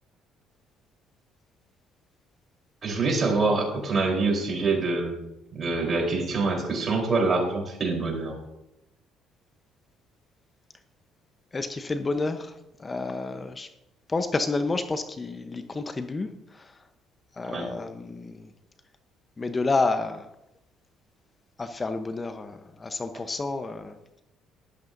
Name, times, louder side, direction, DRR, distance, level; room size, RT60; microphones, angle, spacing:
voice 1, 2.8-5.2 5.5-8.4 17.5-17.7, right 3 dB, 45° right, 1 dB, 3.9 m, -25 dB
voice 2, 11.5-13.7 14.1-16.7 17.4-18.5 19.4-20.3 21.6-24.2, left 3 dB, 30° left, 9 dB, 0.9 m, -30 dB
12.5 x 12.0 x 2.7 m, 0.89 s
supercardioid pair, 65°, 0 cm